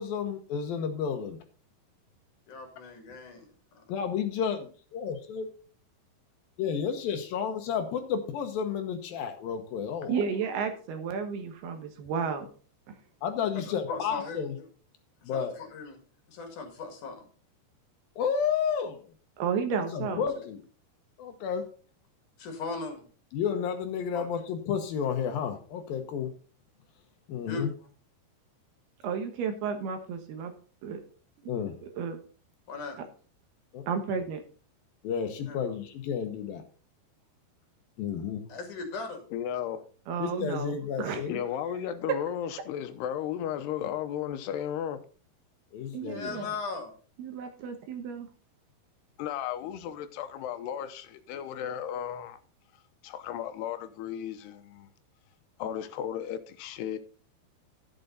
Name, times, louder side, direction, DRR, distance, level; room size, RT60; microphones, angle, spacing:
voice 1, 0.0-1.4 3.9-5.5 6.6-10.3 13.2-14.6 15.2-15.5 18.2-19.0 19.7-20.6 21.2-21.6 23.3-26.3 27.3-27.7 31.5-31.7 33.7-33.9 35.0-36.6 38.0-38.4 40.2-41.4 45.7-46.3, left 7 dB, 70° left, 6 dB, 2.6 m, -31 dB
voice 2, 2.5-3.4 13.6-14.7 15.3-16.0 16.3-17.2 20.0-20.2 22.4-23.0 24.1-24.3 27.5-27.6 32.7-33.0 35.5-35.6 38.5-39.2 46.1-46.9, left 4 dB, 55° left, 4 dB, 3.3 m, -38 dB
voice 3, 10.1-12.5 19.4-20.2 29.0-30.5 30.8-31.0 31.4-31.5 31.8-32.2 33.9-34.4 40.1-41.2 45.9-46.5 47.2-48.3, right 6 dB, 75° right, 6 dB, 3.2 m, -32 dB
voice 4, 39.3-39.9 41.3-45.1 49.2-52.4 53.0-54.9 55.6-57.0, left 9 dB, 85° left, 10 dB, 2.9 m, -34 dB
11.5 x 8.2 x 4.0 m, 0.40 s
omnidirectional pair, 4.7 m